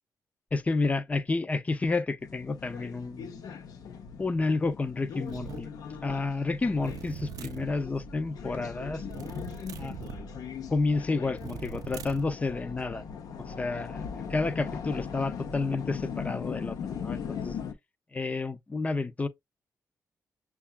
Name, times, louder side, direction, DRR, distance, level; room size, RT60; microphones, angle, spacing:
voice 1, 0.5-3.3 4.2-5.7 6.0-9.0 9.8-10.0 10.7-13.0 13.4-14.0 14.3-17.6 18.1-19.3, left 3 dB, 25° left, 0.5 m, -30 dB
sound 1, 2.2-17.7, left 6 dB, 80° left, 0.6 m, -39 dB
sound 2, 5.3-5.7 6.8-7.7 9.1-10.2 11.4-12.3, right 8 dB, 75° right, 0.4 m, -41 dB
6.5 x 2.3 x 2.2 m
wide cardioid pair, 125°, 6 cm